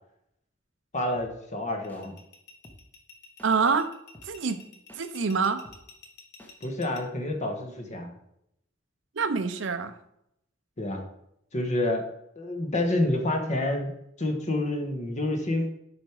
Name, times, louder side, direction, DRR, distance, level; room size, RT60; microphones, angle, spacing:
voice 1, 0.9-2.1 6.6-8.1 10.8-11.0 11.5-12.0 12.4-13.9 14.2-15.7, left 1 dB, 40° left, 4 dB, 1.2 m, -28 dB
sound 1, 1.1-1.3 1.9-2.0 2.6-2.8 3.4-3.5 4.1-4.3 4.9-5.0 5.6-5.8 6.4-6.5, left 1 dB, 10° left, 1.0 m, -50 dB
sound 2, 1.7-7.0, left 4 dB, 55° left, 1.1 m, -50 dB
voice 2, 3.4-3.9 4.2-4.6 5.0-5.6 9.2-9.9, right 5 dB, 70° right, 10 dB, 0.6 m, -26 dB
7.7 x 5.0 x 4.8 m, 0.77 s
head